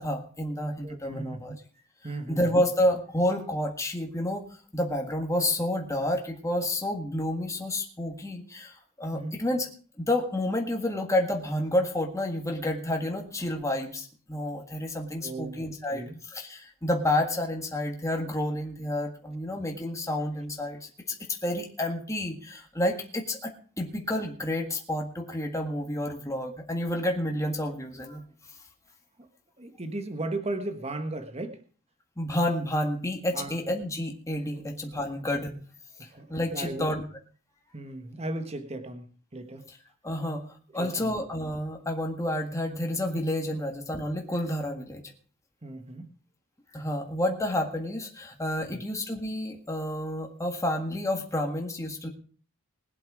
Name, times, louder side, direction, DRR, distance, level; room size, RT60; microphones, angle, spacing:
voice 1, 0.0-1.5 2.3-4.4 4.7-9.7 10.0-21.2 21.4-23.5 23.8-28.2 32.2-35.5 36.0-37.0 39.7-39.8 40.0-40.5 40.7-45.0 46.7-52.1, left 1 dB, 15° left, 2 dB, 1.7 m, -30 dB
voice 2, 0.8-1.5 2.0-2.6 9.1-9.4 15.2-15.6 15.9-16.2 29.6-31.6 33.3-33.6 34.5-34.6 36.0-37.0 37.7-39.1 39.3-39.6 40.7-41.2 45.6-46.1 48.7-48.8, right 2 dB, 30° right, 8 dB, 1.5 m, -36 dB
21.0 x 8.0 x 4.9 m, 0.42 s
head